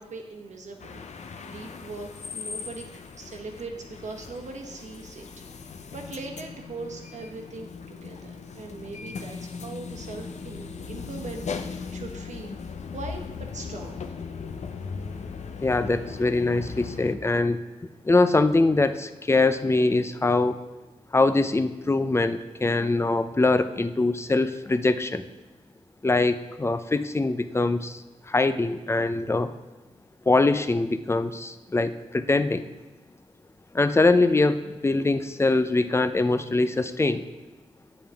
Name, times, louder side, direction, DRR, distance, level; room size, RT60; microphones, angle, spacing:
voice 1, 0.0-2.8 3.1-5.3 5.6-12.6 12.9-14.0, right 3 dB, 65° right, 2 dB, 1.2 m, -40 dB
sound 1, 0.8-17.2, left 5 dB, 65° left, 0.6 m, -38 dB
voice 2, 15.6-17.6 18.0-20.6 21.1-25.2 26.0-29.5 30.3-32.7 33.7-37.2, left 2 dB, 20° left, 11 dB, 0.5 m, -23 dB
8.9 x 7.1 x 3.5 m, 1.2 s
cardioid pair, 60°, 13 cm